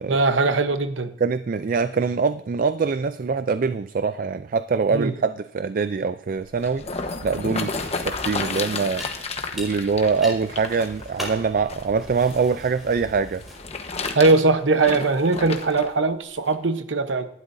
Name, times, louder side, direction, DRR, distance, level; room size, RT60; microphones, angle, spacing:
voice 1, 0.1-1.1 4.9-5.1 14.1-17.3, right 3 dB, 90° right, 10 dB, 0.9 m, -20 dB
voice 2, 1.2-13.4, right 5 dB, 50° right, 13 dB, 0.4 m, -24 dB
sound 1, 6.4-12.5 13.3-15.9 16.5-16.6, left 4 dB, 35° left, 1.1 m, -32 dB
sound 2, 7.5-14.1, left 1 dB, ahead, 4.9 m, -40 dB
18.5 x 12.0 x 2.7 m, 0.73 s
head